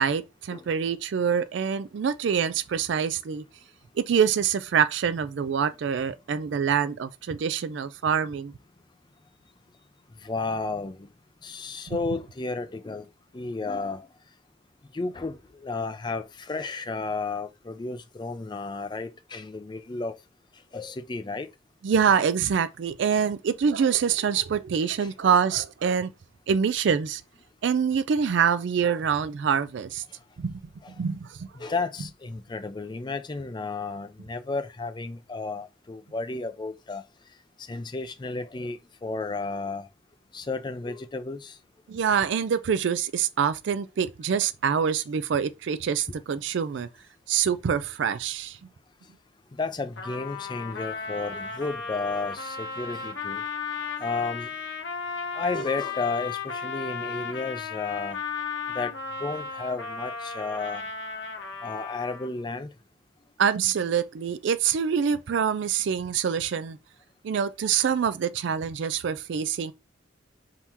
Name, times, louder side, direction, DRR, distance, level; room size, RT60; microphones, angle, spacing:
voice 1, 0.0-3.4 4.0-8.5 11.9-12.0 21.8-26.1 26.5-27.2 27.6-30.0 30.4-30.5 31.0-31.7 41.9-46.9 47.3-48.6 63.4-66.8 67.2-69.7, right 7 dB, 65° right, 0.3 m, -25 dB
voice 2, 10.2-11.1 11.4-13.1 13.3-14.1 14.9-20.1 20.7-21.5 24.8-25.1 30.8-30.9 31.5-37.0 37.7-39.9 40.3-41.5 49.6-53.4 54.0-54.5 55.3-58.2 58.7-58.9 59.2-60.9 61.6-62.7, left 3 dB, 25° left, 0.4 m, -32 dB
Trumpet, 50.0-62.4, left 5 dB, 65° left, 1.1 m, -35 dB
3.6 x 2.8 x 4.4 m
head